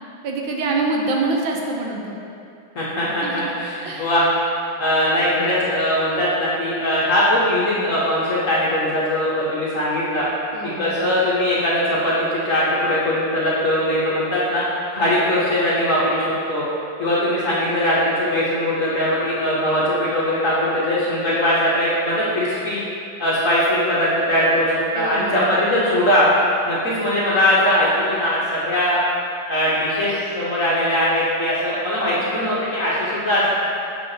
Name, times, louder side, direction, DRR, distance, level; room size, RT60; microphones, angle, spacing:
voice 1, 0.2-2.2 3.2-3.5 3.8-4.1 10.5-11.0 24.9-25.7, right 3 dB, 75° right, 0 dB, 1.4 m, -25 dB
voice 2, 2.7-4.3 4.8-10.3 10.6-14.6 14.9-16.6 17.0-22.8 23.2-26.3 26.7-29.0 29.5-33.4, left 1 dB, 55° left, -8 dB, 1.0 m, -20 dB
6.6 x 5.6 x 2.7 m, 2.6 s
omnidirectional pair, 2.3 m